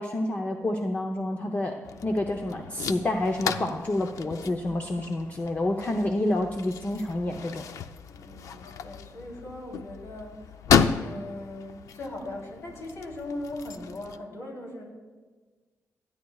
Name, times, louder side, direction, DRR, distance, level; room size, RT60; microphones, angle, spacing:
voice 1, 0.0-7.7, left 1 dB, 30° left, 3 dB, 0.7 m, -28 dB
sound 1, 1.8-14.2, left 7 dB, 85° left, 0.5 m, -32 dB
voice 2, 8.0-10.6 11.0-14.9, left 1 dB, 60° left, -1 dB, 3.2 m, -39 dB
28.5 x 9.7 x 2.4 m, 1.4 s
cardioid pair, 105°, 5 cm